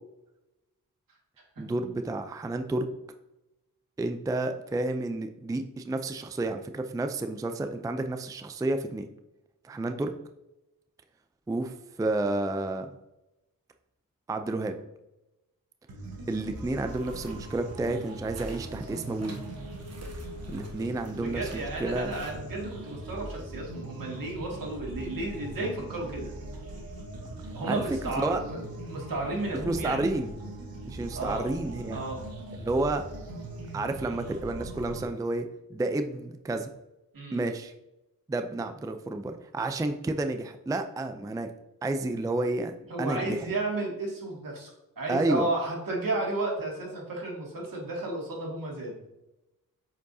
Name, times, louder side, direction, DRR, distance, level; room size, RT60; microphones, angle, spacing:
voice 1, 1.6-2.9 4.0-9.1 9.6-10.1 11.5-12.9 14.3-14.7 16.3-19.4 20.5-22.1 27.7-27.8 28.2-28.4 29.6-30.3 30.9-32.0 32.6-33.0 33.7-36.7 37.3-37.7 38.3-41.5 41.8-42.7 43.0-43.4 45.1-45.5, right 2 dB, 10° right, 7 dB, 0.4 m, -30 dB
sound 1, 15.9-35.0, right 1 dB, 85° right, 1.3 m, -40 dB
sound 2, 16.7-22.3, right 2 dB, 45° right, 1.3 m, -51 dB
voice 2, 21.1-26.3 27.5-28.6 28.9-30.1 31.1-31.4 31.9-32.2 37.1-37.4 42.9-48.9, right 2 dB, 70° right, -2 dB, 2.2 m, -33 dB
7.4 x 4.7 x 2.7 m, 0.95 s
cardioid pair, 75°, 35 cm